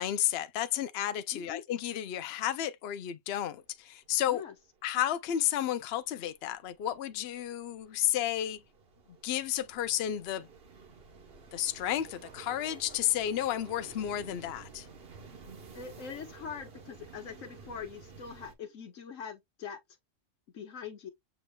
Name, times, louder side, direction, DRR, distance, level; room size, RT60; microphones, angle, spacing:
voice 1, 0.0-4.4 4.8-8.6 9.2-10.5 11.5-14.9, left 12 dB, 65° left, 0.7 m, -32 dB
voice 2, 1.3-1.6 4.3-4.5 15.7-19.8 20.5-21.1, left 7 dB, 80° left, 1.5 m, -43 dB
sound 1, 4.0-4.1 4.5-18.5, right 5 dB, 50° right, 1.2 m, -52 dB
7.1 x 3.0 x 2.2 m
omnidirectional pair, 1.3 m